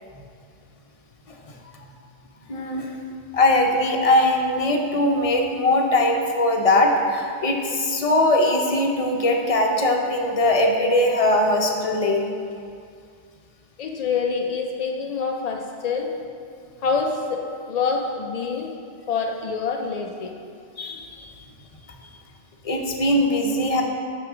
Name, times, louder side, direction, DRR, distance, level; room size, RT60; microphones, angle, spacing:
voice 1, 2.5-2.9 3.3-12.2 20.8-21.3 22.6-23.8, left 1 dB, 35° left, 1 dB, 0.7 m, -20 dB
voice 2, 13.8-16.1 16.8-18.7 19.1-20.3, left 5 dB, 65° left, 2 dB, 0.3 m, -26 dB
6.1 x 6.1 x 4.9 m, 2.3 s
omnidirectional pair, 1.2 m